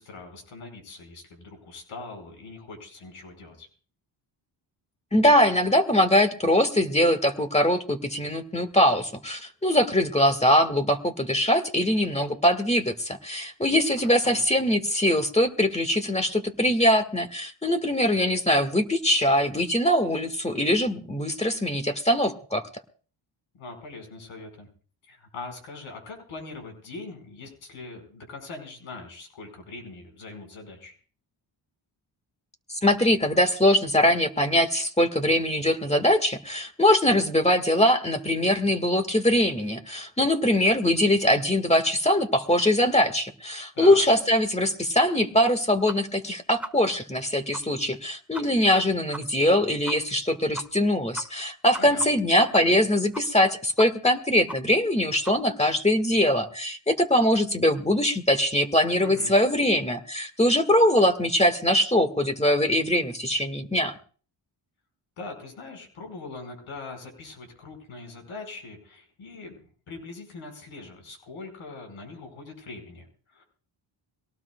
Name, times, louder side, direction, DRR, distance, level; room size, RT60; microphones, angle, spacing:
voice 1, 0.0-3.7 14.0-14.4 23.5-24.7 25.1-31.0 43.7-44.0 51.8-52.0 59.0-59.3 65.2-73.4, left 3 dB, 90° left, 4 dB, 5.1 m, -42 dB
voice 2, 5.1-22.6 32.8-63.9, left 1 dB, 15° left, 8 dB, 1.7 m, -22 dB
sound 1, 45.9-46.0 46.2-46.3 46.6-46.7 47.1-47.2 47.5-47.6 47.9-48.0 48.3-48.4 48.7-48.8 49.1-49.2 49.5-49.6 49.8-50.0 50.3-50.4 50.5-50.9 51.2-52.9 53.1-53.5 53.8-54.1 54.5-54.6 54.9-55.0 55.2-55.4, right 1 dB, 5° right, 1.1 m, -37 dB
23.0 x 18.0 x 2.3 m, 0.41 s
cardioid pair, 75°, 48 cm